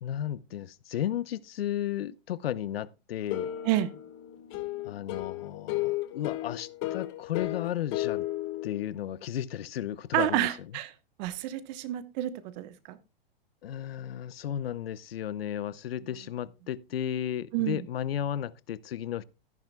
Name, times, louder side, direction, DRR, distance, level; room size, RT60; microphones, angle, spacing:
voice 1, 0.0-3.5 4.8-8.3 8.6-10.5 13.6-19.2, left 11 dB, 80° left, 0.7 m, -34 dB
sound 1, 3.3-8.9, left 15 dB, 40° left, 1.5 m, -34 dB
voice 2, 10.1-10.9 11.2-13.0 17.5-17.8, right 14 dB, 45° right, 1.0 m, -29 dB
13.5 x 10.5 x 2.2 m
hypercardioid pair, 120°, 30 cm